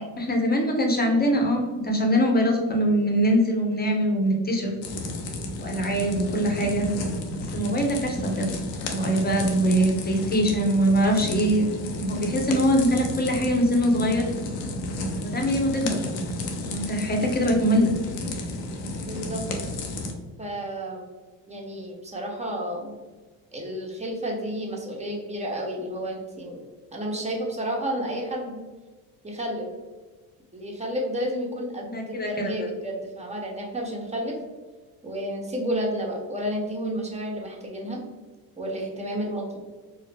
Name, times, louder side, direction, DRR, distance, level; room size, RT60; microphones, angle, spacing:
voice 1, 0.2-4.7 5.6-6.9 7.5-8.5 8.9-11.7 12.0-14.3 15.2-16.0 16.7-17.9 31.9-32.7, equal, 20° left, 1 dB, 1.0 m, -23 dB
sound 1, 4.8-20.1, left 2 dB, 85° left, 0.8 m, -32 dB
voice 2, 19.0-19.4 20.4-21.1 21.5-23.0 23.5-26.6 26.9-28.6 29.2-29.7 30.5-34.4 35.0-38.0 38.6-39.6, equal, 15° right, -1 dB, 1.1 m, -31 dB
4.6 x 2.1 x 3.4 m, 1.3 s
hypercardioid pair, 70°, 48 cm